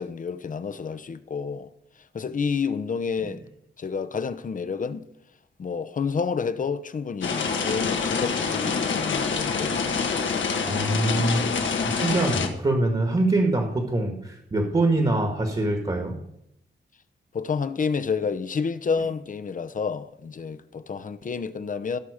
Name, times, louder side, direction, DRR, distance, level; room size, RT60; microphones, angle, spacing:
voice 1, 0.0-1.7 2.1-3.4 3.8-5.1 5.6-10.0 17.3-22.0, left 5 dB, 45° left, 0.7 m, -29 dB
sound 1, 7.2-12.5, left 5 dB, 85° left, 1.5 m, -26 dB
voice 2, 10.6-11.4 11.8-16.2, right 2 dB, 30° right, 1.5 m, -24 dB
17.5 x 5.9 x 4.9 m
wide cardioid pair, 115°, 19 cm